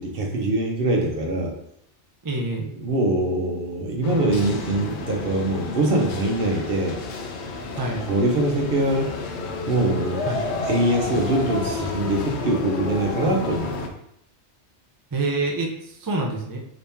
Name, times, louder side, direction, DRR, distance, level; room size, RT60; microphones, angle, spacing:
voice 1, 0.0-1.5 2.8-7.0 8.1-9.1 9.7-10.3 10.7-13.9, right 1 dB, 55° right, 1 dB, 0.9 m, -23 dB
voice 2, 2.2-2.7 7.7-8.0 10.2-10.4 15.1-16.6, right 2 dB, 30° right, 0 dB, 0.4 m, -26 dB
sound 1, 4.0-13.9, left 3 dB, 75° left, 0.9 m, -31 dB
5.0 x 2.8 x 3.5 m, 0.73 s
omnidirectional pair, 1.2 m